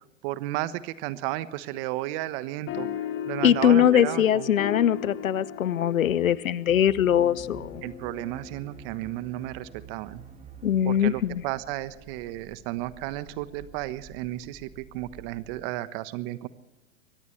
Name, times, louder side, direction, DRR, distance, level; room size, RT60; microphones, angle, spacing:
voice 1, 0.0-2.9 3.3-4.5 7.8-10.2 10.8-16.5, right 16 dB, 45° right, 1.3 m, -33 dB
sound 1, 2.7-9.5, left 9 dB, 30° left, 1.8 m, -37 dB
voice 2, 3.4-7.8 10.6-11.4, left 9 dB, 90° left, 0.8 m, -22 dB
sound 2, 6.7-15.6, right 5 dB, 15° right, 2.3 m, -49 dB
24.0 x 18.5 x 3.3 m
hypercardioid pair, 115°, 40 cm